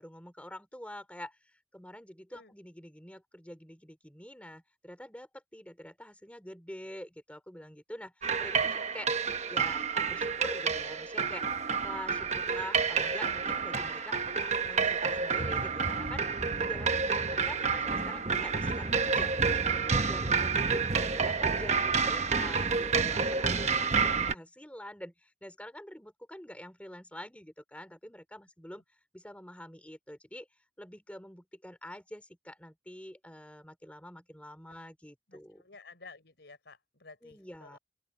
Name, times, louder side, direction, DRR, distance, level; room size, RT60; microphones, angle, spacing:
voice 1, 0.0-9.1 9.5-11.5 11.8-19.6 19.9-28.8 29.1-30.5 30.8-35.6 37.2-37.8, left 1 dB, 5° left, 3.0 m, -46 dB
sound 1, 8.2-24.3, right 5 dB, 35° right, 1.0 m, -29 dB
voice 2, 35.3-37.8, left 3 dB, 65° left, 4.1 m, -53 dB
open air
head